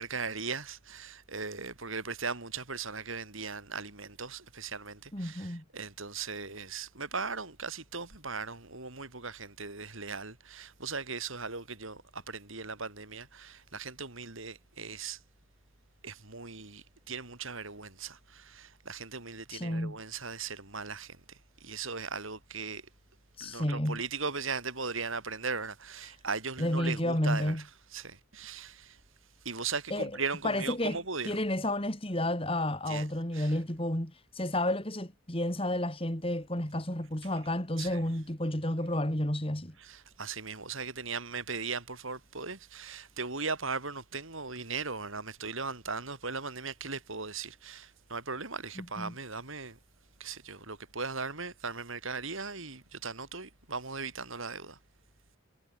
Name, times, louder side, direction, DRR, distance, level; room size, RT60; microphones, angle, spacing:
voice 1, 0.0-15.2 16.0-22.9 23.4-29.0 29.4-31.4 32.9-33.1 33.3-33.5 37.8-38.0 39.8-49.8 50.2-54.8, right 4 dB, 75° right, 5.6 m, -38 dB
voice 2, 5.1-5.6 19.5-20.0 23.4-24.0 26.6-27.6 29.9-30.1 30.4-31.0 31.2-39.7 48.8-49.1, left 1 dB, 25° left, 3.4 m, -31 dB
head